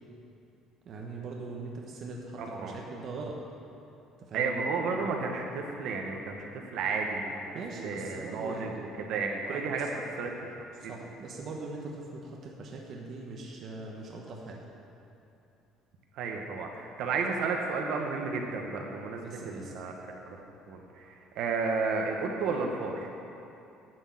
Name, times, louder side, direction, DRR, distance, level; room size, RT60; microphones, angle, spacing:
voice 1, 0.8-3.3 4.3-4.5 7.5-8.7 9.5-10.0 10.8-14.6 19.2-19.7, right 3 dB, 35° right, -1 dB, 1.1 m, -41 dB
voice 2, 2.4-2.8 4.3-9.9 10.2-10.3 10.8-10.9 16.1-20.2 20.7-23.1, right 4 dB, 55° right, 2 dB, 1.2 m, -32 dB
11.5 x 6.3 x 7.7 m, 2.8 s
cardioid pair, 175°, 0 cm